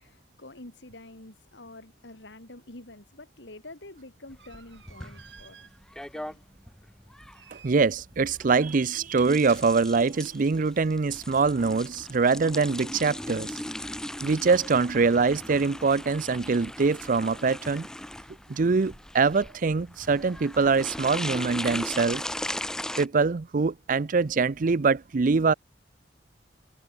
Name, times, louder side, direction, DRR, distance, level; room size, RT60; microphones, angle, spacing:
voice 1, 0.0-5.7 6.1-6.4, left 2 dB, 75° left, 3.4 m, -47 dB
sound 1, 3.6-10.3, right 6 dB, 75° right, 6.5 m, -54 dB
sound 2, 4.3-23.1, left 1 dB, 5° left, 0.4 m, -38 dB
voice 2, 7.5-13.6 14.2-17.9 18.5-22.3 23.0-25.5, right 4 dB, 45° right, 0.5 m, -24 dB
sound 3, 9.9-15.6, left 3 dB, 45° left, 3.9 m, -60 dB
head